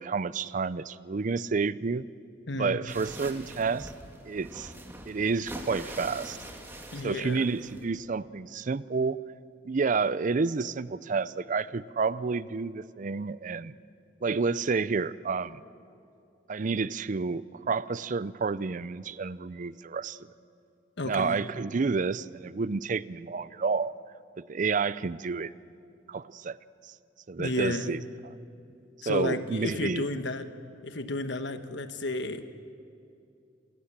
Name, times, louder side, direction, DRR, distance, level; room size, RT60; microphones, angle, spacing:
voice 1, 0.0-2.1 2.6-3.9 4.3-4.7 5.1-6.4 7.0-9.2 9.6-13.8 14.2-15.6 16.5-20.2 21.0-23.9 24.4-25.5 26.1-26.6 27.3-28.0 29.1-30.0, right 4 dB, 45° right, 18 dB, 0.5 m, -30 dB
voice 2, 2.5-2.8 6.9-7.5 21.0-21.4 27.4-28.0 29.0-30.4 30.8-32.4, left 2 dB, 70° left, 9 dB, 1.2 m, -32 dB
sound 1, 2.9-7.9, right 1 dB, 15° right, 2.2 m, -43 dB
28.0 x 17.0 x 7.4 m, 2.6 s
head